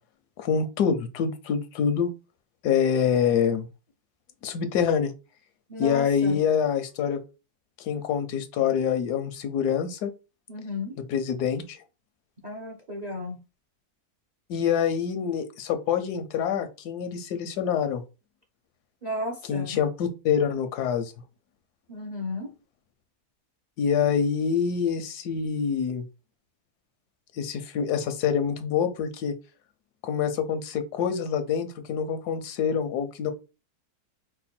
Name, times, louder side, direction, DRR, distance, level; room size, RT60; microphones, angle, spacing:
voice 1, 0.4-2.1 2.6-3.7 4.4-5.1 5.8-7.2 7.8-10.1 11.1-11.8 14.5-18.0 19.5-21.1 23.8-26.0 27.4-29.3 30.0-33.3, left 7 dB, 90° left, 1.3 m, -26 dB
voice 2, 5.7-6.4 10.5-11.0 12.4-13.4 19.0-19.8 21.9-22.5, left 2 dB, 50° right, 0.5 m, -34 dB
4.8 x 2.2 x 4.2 m
omnidirectional pair, 1.6 m